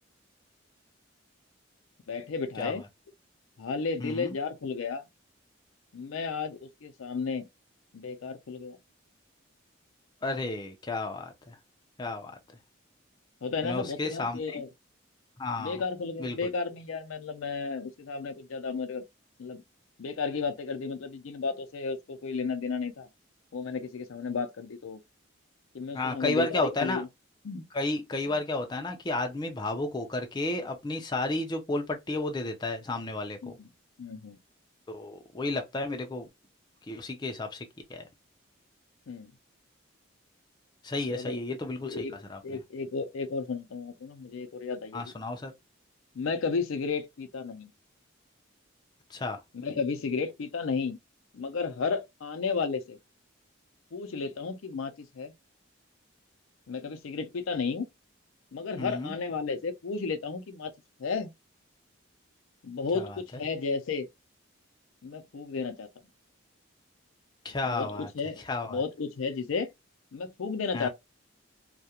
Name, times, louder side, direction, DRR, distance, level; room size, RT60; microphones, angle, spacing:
voice 1, 2.1-2.8 3.6-5.0 5.9-7.5 7.9-8.8 13.4-14.7 15.6-19.0 19.4-19.6 20.0-23.1 23.5-25.0 25.7-27.1 27.4-27.7 33.4-33.7 34.0-34.4 39.1-39.3 41.1-42.2 42.4-45.1 46.1-47.7 49.5-51.0 51.3-53.0 53.9-55.3 56.7-57.9 58.5-60.7 61.0-61.3 62.6-64.1 65.0-65.9 67.7-68.4 68.7-69.7 70.1-70.9, left 4 dB, 80° left, 0.5 m, -33 dB
voice 2, 4.0-4.3 10.2-11.3 12.0-12.3 13.6-14.6 15.4-15.8 16.2-16.4 25.9-27.0 27.7-33.6 34.9-36.3 36.9-37.6 37.9-38.0 40.8-42.0 42.3-42.4 44.9-45.5 49.1-49.4 58.8-59.1 62.9-63.1 67.4-68.1 68.5-68.8 70.7-70.9, left 2 dB, 20° left, 0.4 m, -32 dB
2.3 x 2.1 x 2.8 m
head